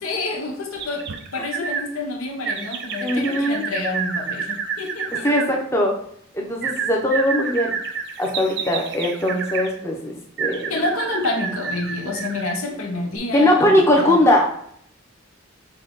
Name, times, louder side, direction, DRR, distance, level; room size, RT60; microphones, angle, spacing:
voice 1, 0.0-1.1 1.3-5.4 10.7-14.2, left 2 dB, 80° left, 0 dB, 0.9 m, -28 dB
sound 1, 0.8-1.9 2.4-5.5 6.6-9.7 10.4-12.6 13.1-13.2, right 6 dB, 55° right, 0.4 m, -29 dB
voice 2, 3.0-3.6 5.2-6.0 6.3-7.7 8.2-10.7 13.3-14.4, left 1 dB, 10° left, 0 dB, 0.7 m, -20 dB
5.4 x 2.3 x 3.9 m, 0.66 s
head